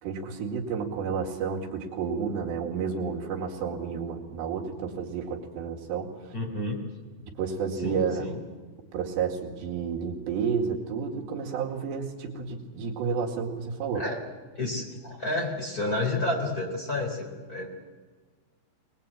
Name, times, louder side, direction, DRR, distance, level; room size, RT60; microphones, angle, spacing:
voice 1, 0.0-6.3 7.4-8.3 8.9-14.0, right 6 dB, 75° right, 0 dB, 4.2 m, -31 dB
voice 2, 6.3-6.8 7.8-8.4 13.9-14.2 14.5-17.7, left 2 dB, 20° left, 0 dB, 3.4 m, -30 dB
24.0 x 20.0 x 8.8 m, 1.4 s
omnidirectional pair, 5.0 m